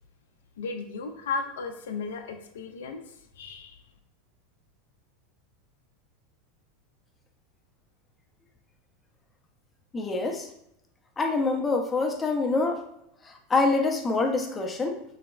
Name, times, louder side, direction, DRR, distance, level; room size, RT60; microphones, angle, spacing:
voice 1, 0.6-3.8, left 4 dB, 75° left, 6 dB, 0.4 m, -35 dB
voice 2, 9.9-10.5 11.2-12.8 13.2-15.2, left 3 dB, 20° left, 2 dB, 0.6 m, -26 dB
4.0 x 2.0 x 2.3 m, 0.79 s
hypercardioid pair, 95°, 0 cm